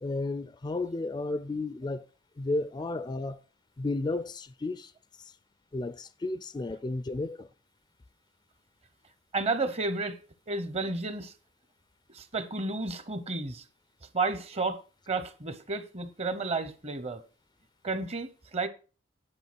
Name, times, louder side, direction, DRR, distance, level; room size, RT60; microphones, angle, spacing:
voice 1, 0.0-2.1 2.4-3.4 3.8-4.9 5.2-5.3 5.7-7.5, left 2 dB, 25° left, 0.4 m, -33 dB
voice 2, 9.3-10.2 10.5-11.3 12.1-13.6 14.1-14.8 15.1-17.2 17.8-18.7, right 3 dB, 35° right, 0.8 m, -31 dB
9.8 x 4.5 x 6.0 m
head